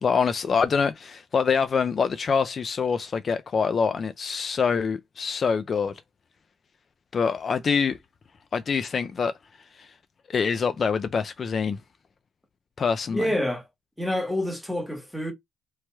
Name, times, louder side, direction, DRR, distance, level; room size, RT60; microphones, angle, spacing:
voice 1, 0.0-6.0 7.1-8.0 8.5-9.3 9.7-9.9 10.3-11.8 12.8-13.3, left 6 dB, 45° left, 0.3 m, -25 dB
voice 2, 13.1-13.6 14.0-15.3, left 1 dB, 5° left, 1.2 m, -27 dB
3.1 x 2.8 x 2.2 m
cardioid pair, 90°, 0 cm